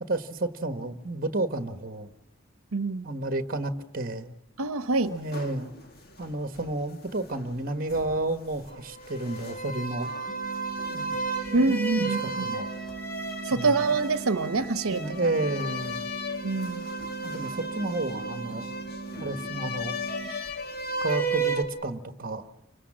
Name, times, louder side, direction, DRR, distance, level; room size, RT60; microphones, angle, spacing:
voice 1, 0.1-2.1 3.0-4.3 5.1-5.7 6.2-10.1 10.9-11.2 11.5-11.6 12.0-12.1 12.4-12.7 13.5-13.9 14.9-16.0 17.2-18.7 19.2-20.0 21.0-22.5, right 2 dB, 40° right, 10 dB, 1.4 m, -31 dB
voice 2, 2.7-3.1 4.6-5.1 11.5-12.5 13.4-15.0 16.4-16.9, right 3 dB, 80° right, 12 dB, 0.9 m, -25 dB
sound 1, 5.1-7.6 7.9-21.6, right 2 dB, 45° left, 2.0 m, -34 dB
sound 2, 10.3-20.3, right 5 dB, 30° left, 2.3 m, -40 dB
29.5 x 24.5 x 7.5 m, 0.91 s
head